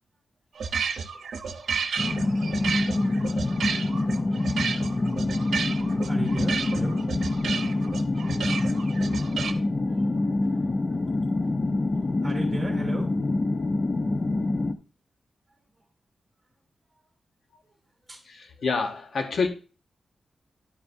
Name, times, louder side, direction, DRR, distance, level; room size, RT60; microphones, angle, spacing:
sound 1, 0.6-9.5, right 6 dB, 75° right, 0.7 m, -32 dB
sound 2, 2.0-14.7, left 2 dB, 30° left, 0.5 m, -26 dB
voice 1, 2.1-2.7 4.3-4.5 5.8-7.1 9.8-11.3 11.6-13.2 15.5-15.8 17.6-18.2, right 1 dB, 10° right, 0 dB, 3.0 m, -39 dB
voice 2, 18.3-19.5, left 4 dB, 60° left, 5 dB, 1.1 m, -27 dB
11.0 x 6.8 x 2.6 m, 0.35 s
wide cardioid pair, 170°, 0 cm